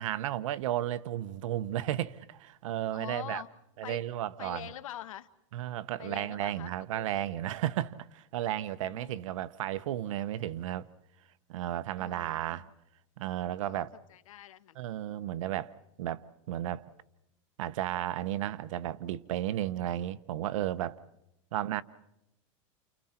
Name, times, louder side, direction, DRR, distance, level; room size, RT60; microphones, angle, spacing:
voice 1, 0.0-3.4 3.8-4.7 5.5-10.9 11.5-12.7 13.2-13.9 14.8-16.8 17.6-21.0 21.5-21.8, right 12 dB, 75° right, 1.0 m, -33 dB
voice 2, 2.9-3.5 3.8-4.0 4.4-5.3 6.0-7.2 8.8-9.3 12.0-12.6 13.7-13.8 14.1-14.8, left 12 dB, 90° left, 1.2 m, -45 dB
30.0 x 29.5 x 4.4 m
supercardioid pair, 140°, 17 cm